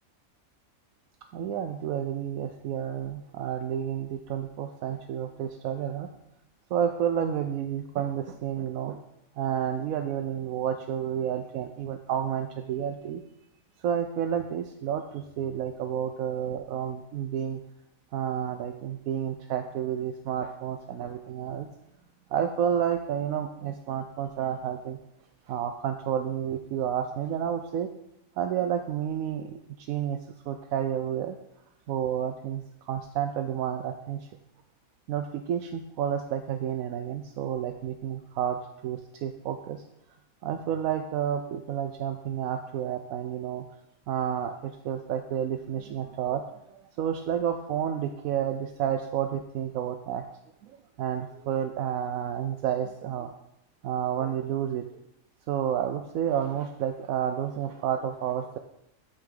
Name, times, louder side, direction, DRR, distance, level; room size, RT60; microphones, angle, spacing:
voice 1, 1.3-6.1 6.7-9.0 9.4-13.2 13.8-17.6 18.1-21.7 22.3-25.0 25.5-27.9 28.4-30.2 30.5-31.4 31.9-34.2 35.1-39.8 40.4-43.6 44.1-46.4 47.0-50.2 51.0-53.3 53.8-54.9 55.5-58.6, right 9 dB, 80° right, 7 dB, 1.0 m, -30 dB
13.0 x 6.4 x 3.8 m, 0.82 s
omnidirectional pair, 1.5 m